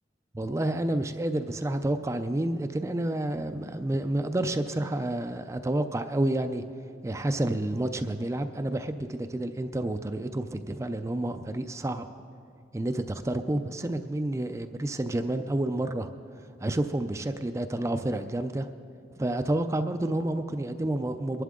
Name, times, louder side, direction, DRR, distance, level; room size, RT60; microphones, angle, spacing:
voice 1, 0.3-6.6 7.0-12.1 12.7-16.1 16.6-18.7 19.2-21.4, right 1 dB, 15° right, 8 dB, 0.4 m, -29 dB
22.0 x 11.0 x 3.7 m, 2.4 s
head